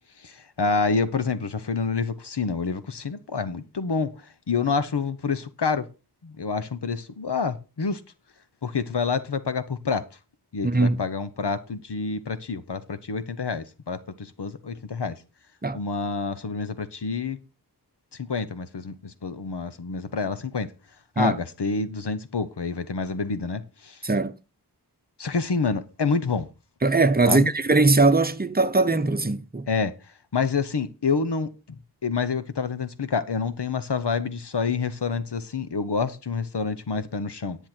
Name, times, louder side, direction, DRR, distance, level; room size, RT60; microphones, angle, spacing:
voice 1, 0.2-4.1 4.5-5.9 6.2-8.0 8.6-10.0 10.5-15.2 15.7-17.4 18.2-20.7 21.2-24.0 25.2-26.5 27.3-27.5 29.7-29.9 30.3-37.6, left 5 dB, 80° left, 1.0 m, -28 dB
voice 2, 10.6-11.0 15.6-15.8 21.2-21.4 24.0-24.3 26.8-29.7, right 3 dB, 25° right, 0.9 m, -20 dB
10.0 x 9.1 x 4.5 m
wide cardioid pair, 45°, 40 cm